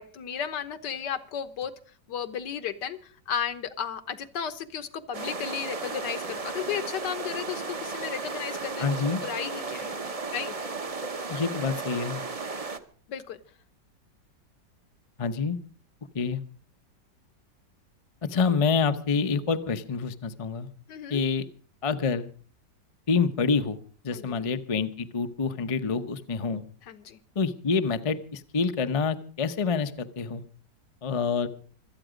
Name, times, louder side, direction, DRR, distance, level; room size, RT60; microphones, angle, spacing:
voice 1, 0.0-1.7 2.1-10.0 10.3-10.6 13.1-13.4 20.9-21.2 24.1-24.4 26.9-27.2, left 8 dB, 70° left, 11 dB, 1.7 m, -34 dB
sound 1, 5.1-12.8, right 3 dB, 30° right, 0.7 m, -34 dB
voice 2, 8.8-9.2 11.3-12.2 15.2-15.6 16.1-16.4 18.2-20.7 21.1-21.5 21.8-22.3 23.1-23.8 24.0-26.6 27.4-30.4 31.0-31.5, left 5 dB, 35° left, 9 dB, 0.5 m, -27 dB
25.0 x 9.1 x 5.1 m, 0.42 s
omnidirectional pair, 1.9 m